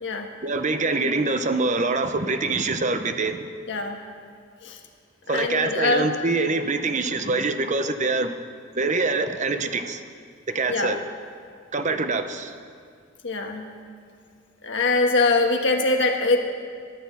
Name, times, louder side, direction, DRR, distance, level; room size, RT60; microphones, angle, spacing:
voice 1, 0.4-3.5 5.3-8.4 8.8-10.0 10.5-11.0 11.7-12.6, right 3 dB, 35° right, 8 dB, 0.7 m, -25 dB
voice 2, 5.3-6.1 10.7-10.9 13.2-13.7 14.6-16.4, left 3 dB, 65° left, 3 dB, 1.4 m, -22 dB
13.5 x 10.5 x 7.2 m, 2.1 s
head